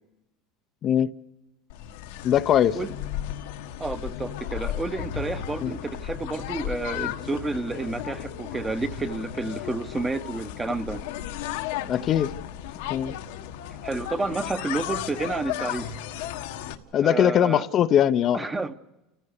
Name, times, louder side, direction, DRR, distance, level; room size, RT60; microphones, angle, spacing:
sound 1, 1.7-16.7, left 11 dB, 85° left, 1.5 m, -34 dB
voice 1, 2.2-2.8 5.6-5.7 11.9-12.3 12.9-13.1 16.9-18.4, left 10 dB, 40° left, 0.7 m, -21 dB
voice 2, 3.8-11.0 13.7-15.9 17.0-17.6 18.3-18.7, right 3 dB, 15° right, 1.0 m, -30 dB
29.5 x 15.5 x 6.6 m
supercardioid pair, 125°, 0 cm